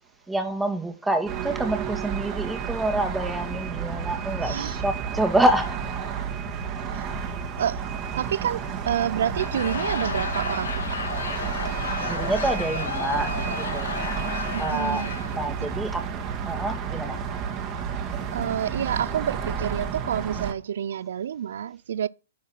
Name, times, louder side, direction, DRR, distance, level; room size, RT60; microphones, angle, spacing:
voice 1, 0.3-6.0 11.6-13.9 14.6-15.0 15.3-16.1 16.4-17.2, right 1 dB, 5° right, 1.7 m, -27 dB
sound 1, 1.3-20.5, right 6 dB, 30° right, 1.8 m, -31 dB
voice 2, 4.4-4.8 6.9-7.8 8.1-11.0 14.5-15.1 15.6-15.7 18.3-22.1, right 9 dB, 70° right, 0.4 m, -29 dB
Laughter / Crowd, 9.2-15.4, left 5 dB, 80° left, 1.9 m, -33 dB
10.0 x 4.7 x 6.0 m
hypercardioid pair, 130°, 0 cm